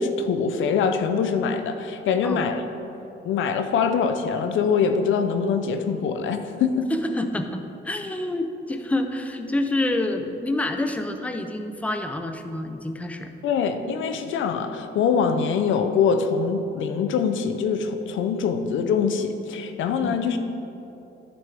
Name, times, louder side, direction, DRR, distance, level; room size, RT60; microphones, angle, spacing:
voice 1, 0.0-2.6 3.2-6.9 13.4-20.4, left 6 dB, 75° left, 7 dB, 0.6 m, -23 dB
voice 2, 6.9-13.3 20.0-20.2, left 1 dB, 5° left, 6 dB, 0.6 m, -27 dB
10.5 x 7.0 x 3.5 m, 2.9 s
cardioid pair, 90°, 20 cm